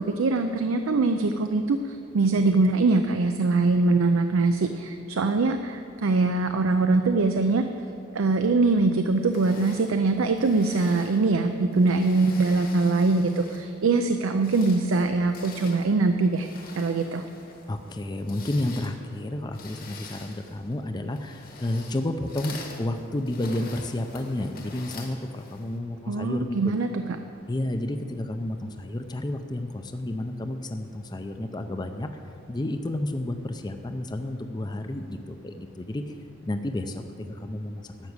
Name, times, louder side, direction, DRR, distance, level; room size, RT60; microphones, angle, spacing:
voice 1, 0.0-7.6 8.1-16.5 16.8-17.2 26.1-27.0, right 3 dB, 85° right, 7 dB, 0.5 m, -23 dB
sound 1, 9.2-13.8 14.2-25.8, left 4 dB, 45° left, 1.3 m, -46 dB
voice 2, 17.7-26.7 27.5-32.1 32.5-36.2 36.4-38.1, left 1 dB, 20° left, 7 dB, 0.5 m, -31 dB
12.0 x 6.1 x 8.1 m, 2.5 s
head